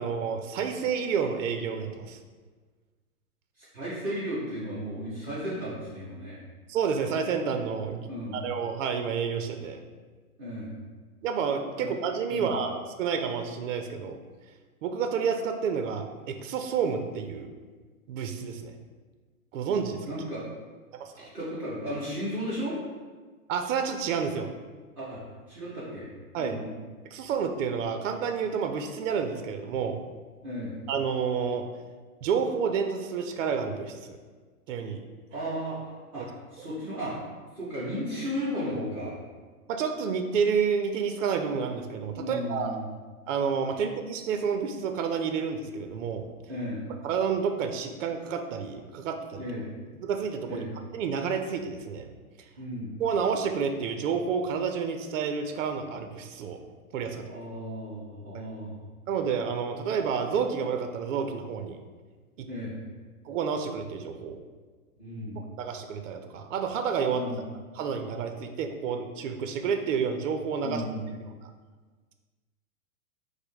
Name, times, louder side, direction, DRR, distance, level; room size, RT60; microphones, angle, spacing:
voice 1, 0.0-2.2 6.7-9.8 11.2-14.2 14.8-17.5 18.1-18.7 19.5-20.1 21.2-21.3 23.5-24.5 26.3-26.7 27.1-30.0 30.9-31.7 32.2-34.2 34.7-35.0 39.7-42.8 43.3-46.3 47.0-49.4 50.0-50.6 50.9-52.1 53.0-56.6 56.9-57.3 59.1-61.8 63.3-64.4 65.6-67.2 67.7-70.8, right 6 dB, 60° right, 6 dB, 0.5 m, -29 dB
voice 2, 3.6-6.4 8.0-8.5 10.4-10.8 11.8-11.9 12.3-12.5 20.1-20.4 21.2-22.8 25.0-25.2 25.5-26.1 26.4-26.8 30.4-30.8 35.3-37.2 37.6-39.2 42.2-42.9 46.5-46.9 49.4-49.7 50.5-50.7 52.6-53.0 57.2-58.8 62.5-62.8 65.0-65.5 67.1-67.4 70.6-71.1, equal, 5° right, -14 dB, 0.3 m, -35 dB
5.0 x 2.1 x 4.6 m, 1.4 s
hypercardioid pair, 140°, 45 cm